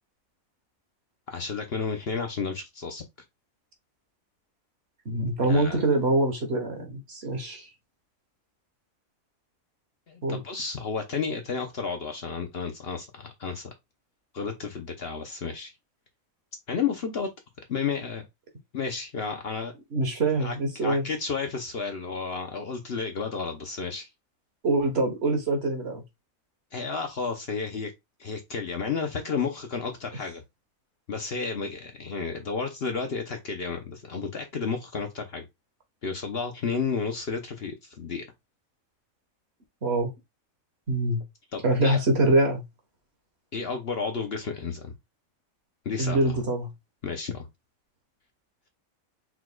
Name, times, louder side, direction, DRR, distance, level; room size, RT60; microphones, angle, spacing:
voice 1, 1.3-3.0 5.5-5.9 10.1-13.7 14.3-15.7 16.7-17.3 17.7-18.3 18.7-19.7 20.4-20.5 20.8-24.1 26.7-27.9 28.2-30.4 31.1-35.4 36.0-38.2 41.5-42.0 43.5-44.9 45.8-46.4 47.0-47.5, left 5 dB, 50° left, 0.9 m, -32 dB
voice 2, 5.0-7.6 10.2-10.4 19.9-21.0 24.6-26.0 39.8-40.1 40.9-41.2 41.6-42.6 46.0-46.7, right 2 dB, 50° right, 1.4 m, -24 dB
4.6 x 4.1 x 2.3 m
omnidirectional pair, 1.5 m